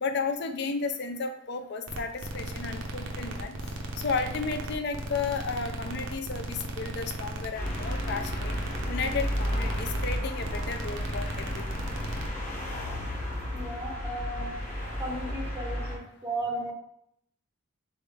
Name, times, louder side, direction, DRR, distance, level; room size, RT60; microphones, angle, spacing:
voice 1, 0.0-3.6 4.0-8.5 8.9-11.8 14.4-14.6, left 4 dB, 50° left, 7 dB, 0.4 m, -33 dB
sound 1, 1.9-12.3, right 1 dB, 60° right, 0.6 m, -36 dB
sound 2, 7.5-16.0, equal, 35° left, 1.3 m, -33 dB
voice 2, 13.5-14.5 15.0-16.7, right 1 dB, 10° right, -2 dB, 0.6 m, -35 dB
4.0 x 3.5 x 3.4 m, 0.72 s
head